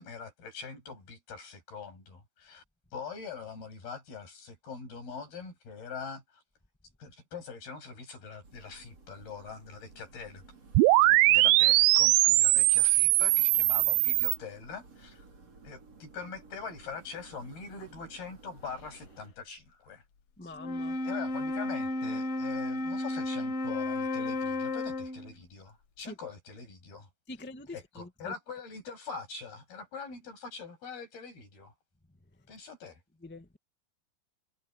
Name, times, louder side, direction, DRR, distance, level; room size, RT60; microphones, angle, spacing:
voice 1, 0.0-2.6 2.9-6.4 7.0-10.4 11.1-15.2 15.6-20.0 20.4-20.5 21.0-27.1 27.7-31.7 32.5-33.0, left 5 dB, 80° left, 9.7 m, -43 dB
sound 1, 8.4-19.3, right 4 dB, 40° right, 6.5 m, -55 dB
sound 2, 10.7-14.4, right 18 dB, 85° right, 2.4 m, -21 dB
voice 2, 20.4-21.0 26.0-26.1 27.3-28.3 33.2-33.6, left 2 dB, 5° left, 0.9 m, -44 dB
Wind instrument woodwind instrument, 20.5-25.3, left 2 dB, 50° left, 2.2 m, -33 dB
omnidirectional pair, 4.3 m